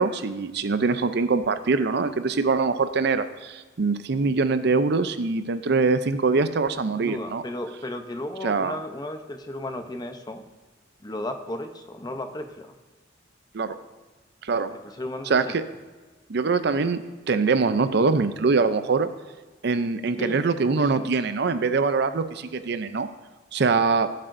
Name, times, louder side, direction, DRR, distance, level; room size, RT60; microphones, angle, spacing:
voice 1, 0.0-7.4 8.4-8.8 13.5-13.8 14.4-14.7 15.3-15.6 16.3-19.1 19.6-23.1 23.5-24.1, right 4 dB, 60° right, 11 dB, 0.5 m, -23 dB
voice 2, 6.9-10.4 11.0-12.7 14.8-15.5 20.2-20.5 20.8-21.1, left 1 dB, 20° left, 6 dB, 0.7 m, -34 dB
16.0 x 7.6 x 2.6 m, 1.3 s
head